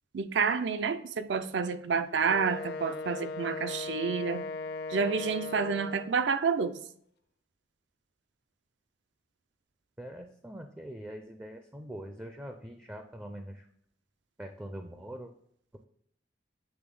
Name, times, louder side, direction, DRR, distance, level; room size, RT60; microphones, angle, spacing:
voice 1, 0.1-4.4 4.9-6.7, right 5 dB, 70° right, 11 dB, 0.5 m, -29 dB
Wind instrument woodwind instrument, 2.2-6.3, left 3 dB, 55° left, 0.5 m, -38 dB
voice 2, 10.0-13.6 14.4-15.3, right 1 dB, 10° right, 5 dB, 0.4 m, -43 dB
7.9 x 3.3 x 3.7 m, 0.67 s
head